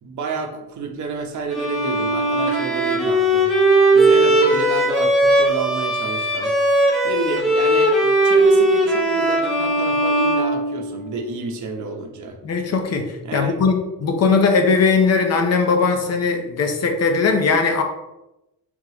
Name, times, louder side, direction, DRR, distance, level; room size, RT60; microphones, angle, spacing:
voice 1, 0.0-3.5 3.9-6.5 7.0-12.4 13.2-13.6, right 4 dB, 55° right, 3 dB, 0.8 m, -29 dB
Bowed string instrument, 1.5-11.2, right 1 dB, ahead, 0.8 m, -18 dB
voice 2, 12.4-17.8, left 4 dB, 45° left, 4 dB, 0.7 m, -19 dB
3.6 x 3.0 x 4.8 m, 0.94 s
wide cardioid pair, 175°, 35 cm